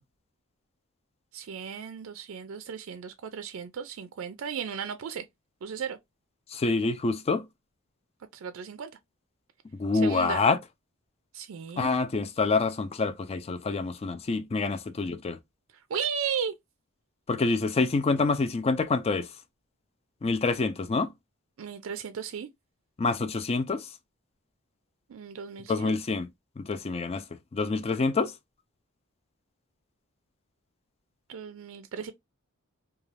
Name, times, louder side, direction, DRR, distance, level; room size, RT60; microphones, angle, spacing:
voice 1, 1.3-5.2 5.6-6.0 8.3-8.9 10.0-10.4 11.3-11.9 15.9-16.5 21.6-22.5 25.1-26.0 31.3-32.1, right 7 dB, 70° right, 0.4 m, -35 dB
voice 2, 6.5-7.4 9.7-10.6 11.8-15.4 17.3-19.3 20.2-21.1 23.0-23.9 25.7-26.3 26.6-27.2 27.5-28.3, left 3 dB, 30° left, 0.4 m, -26 dB
2.4 x 2.3 x 3.2 m
head